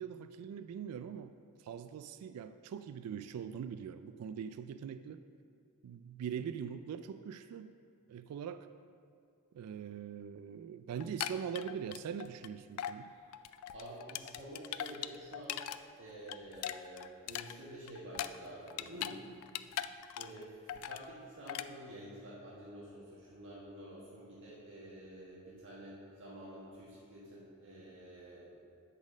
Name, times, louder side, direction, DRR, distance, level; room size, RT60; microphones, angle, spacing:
voice 1, 0.0-5.2 5.8-7.7 8.1-8.7 9.5-13.1, right 7 dB, 80° right, 12 dB, 0.3 m, -42 dB
sound 1, 11.0-12.5 12.8-13.0 13.3-15.8 16.1-19.2 19.4-20.4 20.7-21.1 21.5-21.7, left 12 dB, 75° left, 0.3 m, -40 dB
voice 2, 13.7-15.6 16.0-19.2 19.8-28.5, right 1 dB, 60° right, -7 dB, 1.3 m, -49 dB
8.6 x 4.2 x 6.2 m, 2.3 s
head